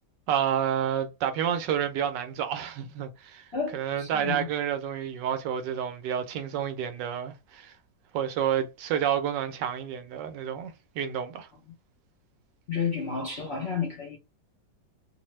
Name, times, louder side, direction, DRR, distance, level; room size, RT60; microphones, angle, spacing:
voice 1, 0.3-3.4 3.7-7.7 8.1-11.5, right 9 dB, 85° right, 1.3 m, -29 dB
voice 2, 3.5-4.5 12.7-14.2, left 6 dB, 55° left, 0.7 m, -31 dB
3.1 x 2.0 x 3.0 m
omnidirectional pair, 1.8 m